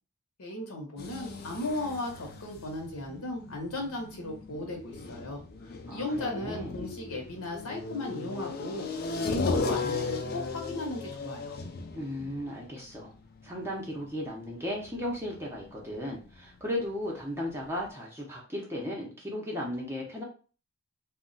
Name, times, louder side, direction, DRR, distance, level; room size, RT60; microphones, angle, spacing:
voice 1, 0.4-5.4 5.9-8.9 9.2-11.5, left 1 dB, 75° left, 2 dB, 0.8 m, -36 dB
sound 1, 1.0-16.6 16.9-17.0 17.5-17.6 17.8-17.9, left 4 dB, 45° left, 0.3 m, -37 dB
voice 2, 5.9-6.7 11.9-13.1 13.4-20.2, left 1 dB, 10° right, -3 dB, 0.5 m, -35 dB
2.3 x 2.1 x 3.8 m, 0.38 s
head